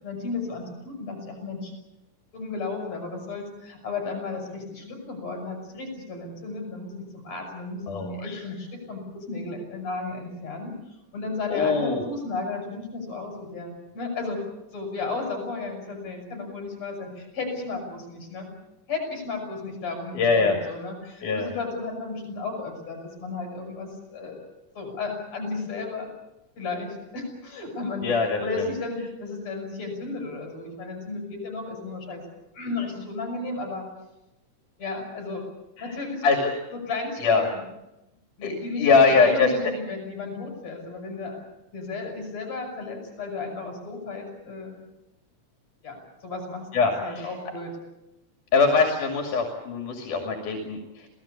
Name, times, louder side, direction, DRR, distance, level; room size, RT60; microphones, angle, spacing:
voice 1, 0.0-1.7 2.3-9.0 9.3-10.7 11.1-14.4 14.7-18.5 18.9-24.4 24.8-26.1 26.6-28.1 28.4-32.2 32.6-33.8 34.8-35.4 35.8-36.2 36.7-37.5 38.4-41.4 41.7-44.8 45.8-46.0 46.2-46.7 47.0-47.7, left 3 dB, 55° left, 3 dB, 8.7 m, -34 dB
voice 2, 7.9-8.4 11.5-12.0 20.1-20.6 21.2-21.5 28.0-28.7 35.8-36.0 36.2-36.5 37.2-37.5 38.4-39.7 46.7-47.4 48.5-51.1, left 4 dB, 85° left, 3 dB, 3.9 m, -23 dB
27.0 x 18.0 x 8.6 m, 0.94 s
omnidirectional pair, 3.5 m